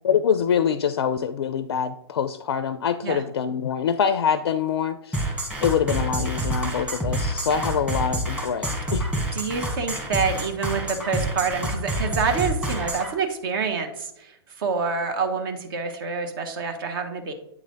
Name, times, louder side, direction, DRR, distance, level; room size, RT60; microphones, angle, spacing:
voice 1, 0.0-5.2 5.6-9.1, left 7 dB, 75° left, 12 dB, 0.4 m, -24 dB
sound 1, 5.1-13.1, right 1 dB, 10° right, 1.2 m, -27 dB
voice 2, 9.3-17.3, right 5 dB, 55° right, 6 dB, 0.9 m, -27 dB
8.5 x 3.3 x 3.8 m, 0.79 s
hypercardioid pair, 120°, 14 cm